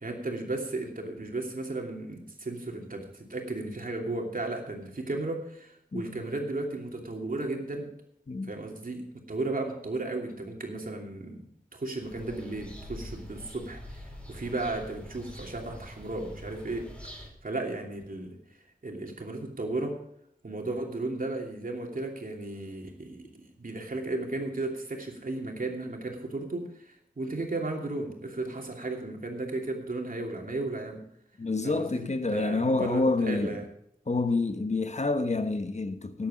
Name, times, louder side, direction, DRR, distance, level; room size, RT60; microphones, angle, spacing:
voice 1, 0.0-7.9 8.5-11.5 11.7-18.4 18.8-20.0 20.4-31.0 31.6-33.6, right 2 dB, 65° right, 2.8 m, -35 dB
sound 1, 12.0-17.3, equal, 10° left, 5.0 m, -44 dB
voice 2, 31.4-33.6 34.1-36.3, left 3 dB, 50° left, 1.1 m, -28 dB
14.0 x 10.5 x 5.0 m
wide cardioid pair, 60°, 15 cm